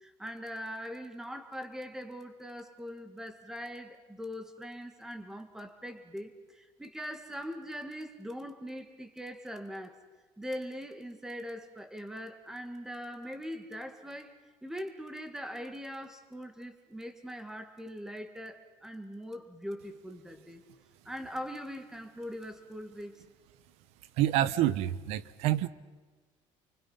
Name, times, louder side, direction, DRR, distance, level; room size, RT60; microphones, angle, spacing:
voice 1, 0.0-10.0 10.4-14.4 14.6-20.6 21.1-23.2, equal, 5° right, 7 dB, 1.9 m, -41 dB
voice 2, 24.2-25.7, right 13 dB, 80° right, 16 dB, 1.0 m, -27 dB
30.0 x 24.0 x 5.7 m, 1.4 s
cardioid pair, 155°, 10 cm